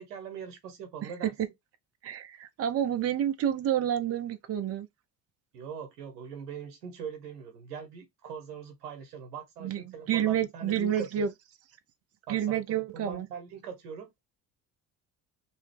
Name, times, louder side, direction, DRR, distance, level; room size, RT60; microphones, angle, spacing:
voice 1, 0.0-1.3 5.5-11.3 12.3-14.2, right 6 dB, 85° right, 1.1 m, -41 dB
voice 2, 1.0-1.5 2.0-4.9 9.6-11.3 12.3-13.3, right 10 dB, 30° right, 0.7 m, -29 dB
2.7 x 2.7 x 3.4 m
hypercardioid pair, 55°, 46 cm